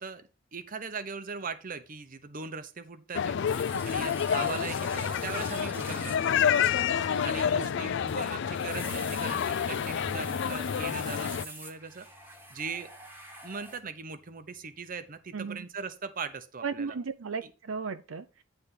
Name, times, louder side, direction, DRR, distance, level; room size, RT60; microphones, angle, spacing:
voice 1, 0.0-3.4 3.8-6.8 7.2-12.1 12.5-12.9 13.4-17.0 17.4-17.5, right 5 dB, 45° right, 0.8 m, -40 dB
sound 1, 3.1-11.4, left 8 dB, 60° left, 0.4 m, -29 dB
sound 2, 3.5-13.8, right 1 dB, 10° right, 1.3 m, -46 dB
sound 3, 10.0-11.6 11.8-13.6, left 1 dB, 15° left, 1.5 m, -50 dB
voice 2, 15.3-15.6 16.6-18.4, right 5 dB, 75° right, 0.6 m, -35 dB
9.6 x 3.4 x 5.8 m
head